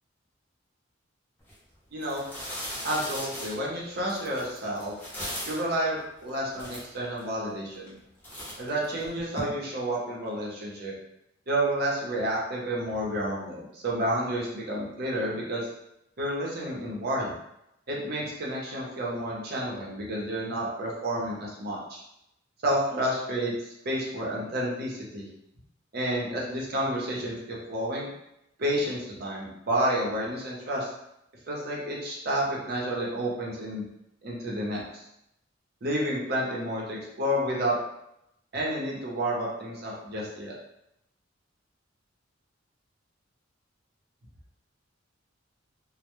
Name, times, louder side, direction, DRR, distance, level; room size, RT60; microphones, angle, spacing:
sound 1, 1.4-1.5 2.0-5.7 6.3-6.4 6.5-7.3 7.7-8.0 8.2-9.4, equal, 10° left, 0.7 m, -38 dB
voice 1, 1.9-2.2 2.8-4.9 5.5-7.9 8.6-10.9 11.5-15.7 16.2-17.3 17.9-22.0 22.6-25.3 25.9-28.1 28.6-30.9 31.5-33.8 34.2-35.0 35.8-37.8 38.5-40.5, right 1 dB, 50° right, -4 dB, 0.7 m, -30 dB
2.1 x 2.0 x 2.9 m, 0.84 s
head